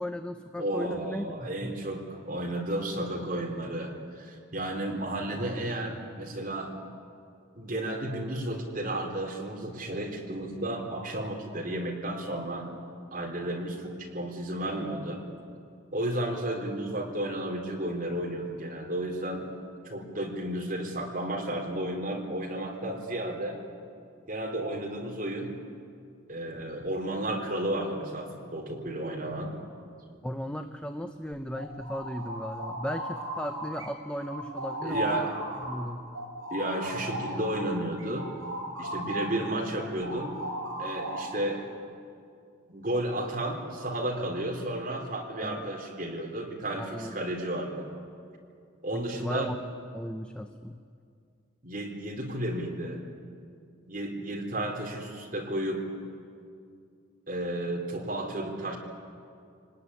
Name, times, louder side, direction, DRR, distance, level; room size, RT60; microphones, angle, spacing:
voice 1, 0.0-1.7 30.2-35.3 35.6-36.1 45.4-45.6 46.8-47.1 48.9-49.6 49.9-50.8, equal, 5° left, 6 dB, 0.7 m, -36 dB
voice 2, 0.6-6.7 7.6-12.7 13.1-15.2 15.9-19.4 19.8-23.6 24.3-25.5 26.3-29.5 34.8-35.3 36.5-38.3 38.8-40.3 40.8-41.6 42.7-47.9 48.8-49.5 51.6-53.0 53.9-55.8 57.3-58.8, right 1 dB, 40° right, 0 dB, 3.8 m, -33 dB
sound 1, 31.3-33.9 34.2-39.4 39.7-41.4, right 1 dB, 75° right, 5.4 m, -36 dB
26.5 x 19.0 x 9.9 m, 2.4 s
head